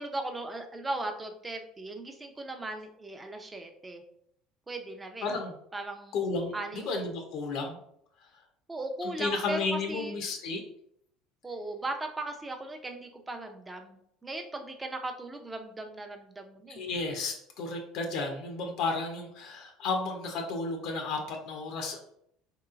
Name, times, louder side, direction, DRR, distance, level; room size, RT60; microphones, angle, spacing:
voice 1, 0.0-4.0 4.7-5.3 5.7-6.2 6.5-6.8 8.7-10.1 11.4-16.9, right 2 dB, 15° right, 5 dB, 0.5 m, -38 dB
voice 2, 5.2-5.5 6.1-7.8 9.0-10.6 16.7-22.0, left 3 dB, 65° left, 4 dB, 0.5 m, -33 dB
3.0 x 2.8 x 2.4 m, 0.71 s
supercardioid pair, 95°, 0 cm